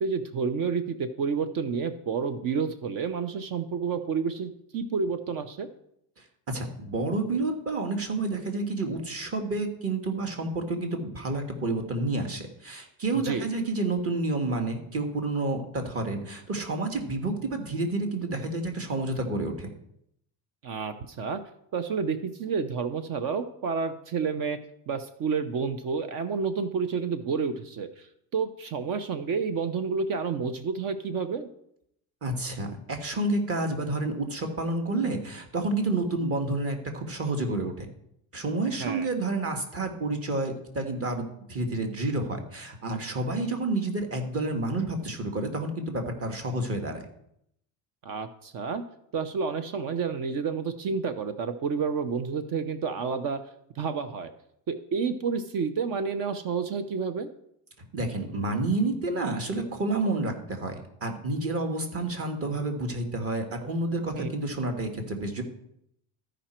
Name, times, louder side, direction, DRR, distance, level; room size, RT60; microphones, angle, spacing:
voice 1, 0.0-5.7 13.2-13.4 20.6-21.4 21.7-24.6 24.9-28.1 28.3-31.5 38.8-39.1 48.0-48.8 49.1-53.4 53.8-54.3 54.7-57.3 64.2-64.3, right 5 dB, 50° right, 11 dB, 0.7 m, -30 dB
voice 2, 6.2-19.7 32.2-37.9 38.3-47.1 57.9-65.4, right 2 dB, 35° right, 4 dB, 1.6 m, -29 dB
13.5 x 5.1 x 4.4 m, 0.75 s
cardioid pair, 120°, 43 cm